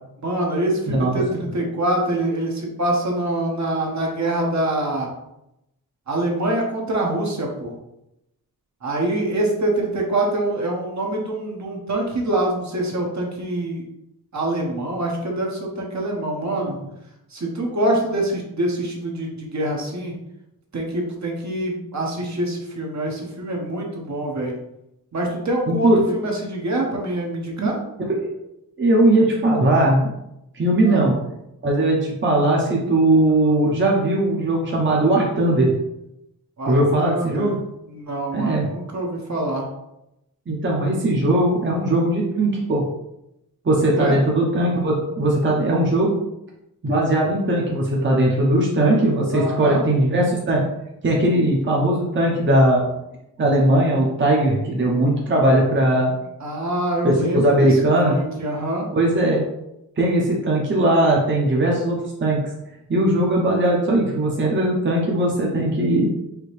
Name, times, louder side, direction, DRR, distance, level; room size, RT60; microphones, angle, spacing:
voice 1, 0.2-5.1 6.1-7.7 8.8-13.8 14.3-16.9 17.3-20.1 20.7-24.5 25.1-27.8 30.8-31.0 36.6-37.6 37.9-39.7 44.0-44.2 49.3-49.8 56.4-58.9, right 1 dB, 50° right, -1 dB, 1.1 m, -25 dB
voice 2, 0.9-1.2 25.7-26.0 27.6-27.7 28.8-30.1 30.5-31.2 31.6-35.7 36.7-37.6 38.3-38.7 40.5-42.8 43.6-46.1 46.8-50.6 51.0-52.9 53.4-56.1 57.0-58.2 58.9-59.4 60.0-62.4 62.9-66.1, right 1 dB, 30° right, -3 dB, 0.9 m, -19 dB
4.9 x 2.9 x 3.2 m, 0.84 s
wide cardioid pair, 110°, 36 cm